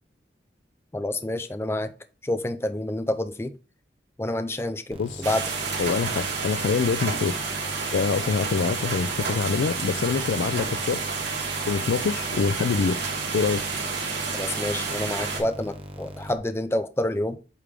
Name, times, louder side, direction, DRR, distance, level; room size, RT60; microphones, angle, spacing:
voice 1, 0.9-1.9 2.2-3.5 4.2-5.5 14.3-17.4, left 1 dB, 15° left, 0.4 m, -28 dB
sound 1, 4.9-16.4, equal, 30° right, 1.0 m, -40 dB
sound 2, 5.2-15.4, right 4 dB, 75° right, 2.4 m, -30 dB
voice 2, 5.8-7.3 7.9-11.0 11.7-13.0 13.3-13.6, left 5 dB, 85° left, 0.3 m, -25 dB
8.3 x 3.4 x 3.6 m
head